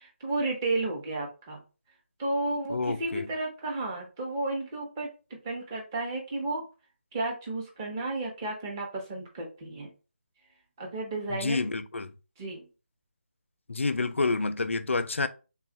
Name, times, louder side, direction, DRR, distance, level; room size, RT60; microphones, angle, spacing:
voice 1, 0.0-1.6 2.2-6.6 7.1-9.9 10.8-11.6 12.4-12.7, right 2 dB, 15° right, 0.8 m, -32 dB
voice 2, 2.7-3.3 11.3-12.1 13.7-15.3, left 3 dB, 90° left, 0.5 m, -29 dB
3.6 x 2.3 x 3.9 m
figure-of-eight pair, 170°, 7 cm